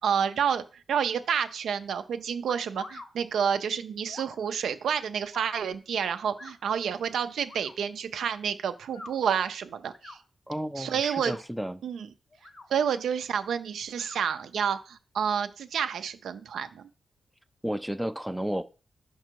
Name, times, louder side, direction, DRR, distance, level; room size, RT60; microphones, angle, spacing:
voice 1, 0.0-10.2 10.8-11.4 11.8-12.1 12.7-16.9, right 7 dB, 90° right, 0.5 m, -29 dB
sound 1, 2.5-3.1 4.1-4.4 5.3-5.6 6.4-6.6 7.5-7.7 8.8-9.1 9.9-10.2 11.0-11.5 12.3-12.7 13.9-14.2, left 2 dB, 35° left, 0.8 m, -45 dB
voice 2, 10.5-11.8 17.6-18.6, equal, 5° right, 0.4 m, -32 dB
5.3 x 5.0 x 4.5 m
wide cardioid pair, 105°, 0 cm